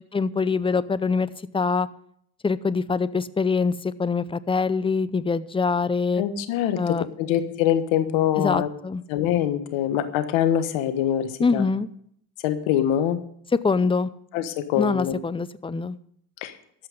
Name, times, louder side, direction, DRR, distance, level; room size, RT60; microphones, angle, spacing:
voice 1, 0.1-1.9 2.4-6.2 6.8-7.1 8.4-9.0 11.4-11.9 13.6-14.1 14.8-16.0, left 4 dB, 10° left, 17 dB, 0.5 m, -24 dB
voice 2, 6.2-8.7 9.1-11.7 12.4-13.2 14.3-15.2 16.4-16.5, left 10 dB, 90° left, 10 dB, 1.5 m, -24 dB
13.5 x 5.8 x 9.5 m, 0.68 s
cardioid pair, 95°, 45 cm